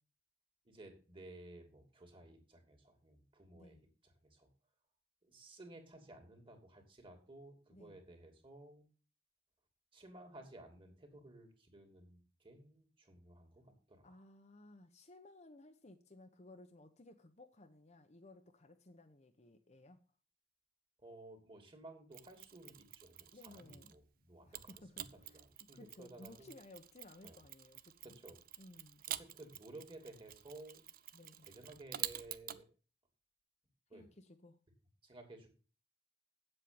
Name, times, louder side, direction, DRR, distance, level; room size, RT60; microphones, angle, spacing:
voice 1, 0.6-3.8 4.0-4.5 5.2-8.9 9.9-14.2 21.0-26.5 27.2-27.4 28.0-28.4 29.1-30.8 31.4-32.7 33.9-34.1 35.0-35.5, right 2 dB, 30° right, 4 dB, 2.8 m, -56 dB
voice 2, 14.0-20.0 23.3-24.0 24.5-28.1 28.6-29.0 31.1-31.5 33.9-34.6, left 2 dB, 40° left, 6 dB, 1.0 m, -58 dB
Mechanisms, 22.1-24.0 24.5-32.6, right 12 dB, 55° right, 0.6 m, -48 dB
8.6 x 7.8 x 6.9 m, 0.37 s
head